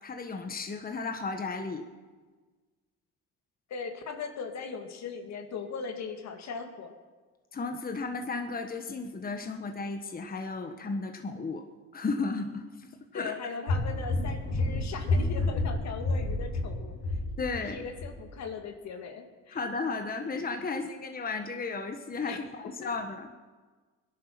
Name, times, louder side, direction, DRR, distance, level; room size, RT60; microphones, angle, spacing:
voice 1, 0.0-1.9 7.5-11.6 11.9-13.3 17.4-17.8 19.5-23.3, left 4 dB, 30° left, 5 dB, 1.5 m, -34 dB
voice 2, 3.7-6.9 13.1-17.0 17.6-19.6 22.2-22.4 22.8-22.9, left 5 dB, 65° left, 5 dB, 2.2 m, -39 dB
sound 1, 13.7-17.7 18.0-18.1, left 2 dB, 85° left, 6.2 m, -29 dB
20.5 x 11.5 x 6.0 m, 1.4 s
supercardioid pair, 85°, 30 cm